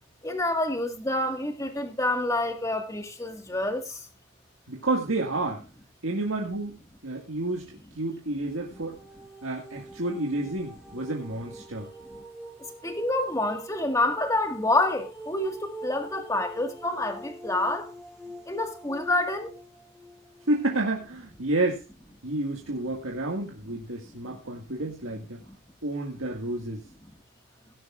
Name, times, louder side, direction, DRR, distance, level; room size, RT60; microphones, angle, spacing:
voice 1, 0.2-3.8 12.8-17.9 18.5-19.5, left 2 dB, 15° left, 1.7 m, -27 dB
voice 2, 4.7-5.6 6.0-9.0 9.4-11.9 20.5-21.8 22.2-25.4 25.8-26.8, right 2 dB, 75° right, 1.9 m, -30 dB
sound 1, 8.5-21.3, right 1 dB, ahead, 3.4 m, -45 dB
17.5 x 10.5 x 2.5 m
head